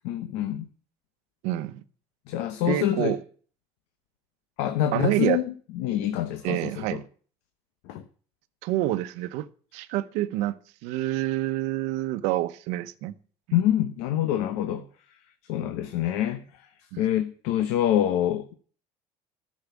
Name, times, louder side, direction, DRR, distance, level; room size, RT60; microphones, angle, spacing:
voice 1, 0.0-0.7 2.3-3.2 4.6-7.0 7.9-8.0 13.5-14.9 15.5-16.7 17.0-18.5, left 11 dB, 80° left, 1.0 m, -26 dB
voice 2, 1.4-1.8 2.7-3.2 4.9-5.4 6.4-7.0 8.6-9.5 9.7-13.1 13.5-13.6 16.9-17.1, right 15 dB, 80° right, 0.9 m, -27 dB
12.0 x 6.5 x 8.3 m
cardioid pair, 115°, 12 cm